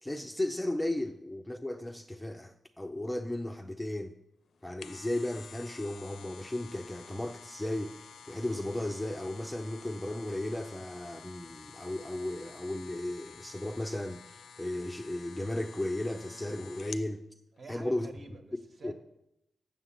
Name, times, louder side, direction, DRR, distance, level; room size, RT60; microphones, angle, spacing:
voice 1, 0.0-4.2 4.6-17.2 17.7-18.1 18.8-18.9, left 1 dB, 5° left, 0.5 m, -35 dB
sound 1, 4.5-17.1 17.6-17.7, left 6 dB, 70° left, 0.5 m, -50 dB
voice 2, 17.5-18.9, right 3 dB, 40° right, 1.3 m, -49 dB
8.0 x 7.1 x 7.4 m
wide cardioid pair, 150°, 0 cm